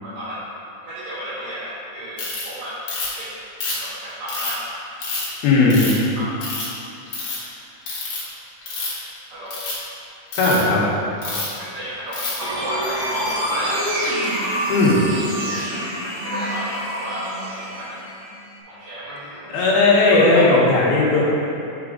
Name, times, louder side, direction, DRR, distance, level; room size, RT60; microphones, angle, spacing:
voice 1, 0.0-0.5 0.8-2.8 3.2-3.3 3.7-4.6 6.2-6.3 9.3-9.6 11.2-13.8 15.3-18.0 18.7-19.6 20.3-20.4, equal, 75° right, -13 dB, 3.3 m, -33 dB
Ratchet pawl, 2.2-2.4 2.9-3.2 3.6-4.5 5.0-5.3 5.7-6.0 6.4-6.8 7.1-7.4 7.9-8.2 8.6-9.0 9.5-9.7 10.3-10.6 11.2-11.5 12.1-12.4, left 3 dB, 55° left, 2.8 m, -27 dB
voice 2, 5.4-5.9 10.4-10.8 14.7-15.0 19.5-21.3, left 3 dB, 75° left, -5 dB, 3.0 m, -16 dB
sound 1, 12.4-18.6, right 1 dB, 55° right, 1.9 m, -27 dB
8.9 x 5.1 x 3.7 m, 2.7 s
omnidirectional pair, 4.6 m